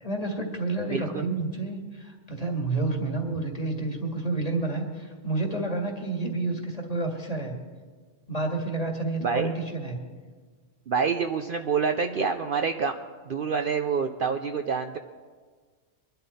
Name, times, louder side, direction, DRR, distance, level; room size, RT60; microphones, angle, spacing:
voice 1, 0.0-7.6 8.3-10.0, right 2 dB, 30° left, 2 dB, 2.0 m, -29 dB
voice 2, 0.9-1.3 9.2-9.5 10.9-13.0 13.3-15.0, right 5 dB, 55° right, 6 dB, 0.7 m, -27 dB
22.5 x 11.5 x 4.2 m, 1.5 s
omnidirectional pair, 1.3 m